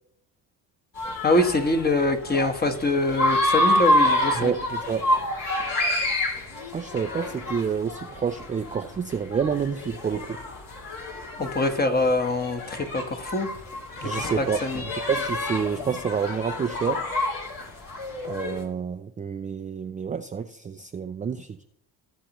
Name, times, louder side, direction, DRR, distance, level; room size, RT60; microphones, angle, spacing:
sound 1, 0.9-18.6, left 1 dB, 55° left, 2.7 m, -28 dB
voice 1, 1.2-4.5 11.4-13.5 14.0-14.8, left 2 dB, 25° left, 6 dB, 1.2 m, -24 dB
voice 2, 4.4-5.0 6.7-10.3 14.0-14.6 15.1-17.0 18.3-21.6, right 6 dB, 20° right, 7 dB, 0.4 m, -28 dB
17.5 x 6.6 x 3.0 m, 0.74 s
cardioid pair, 100°, 40 cm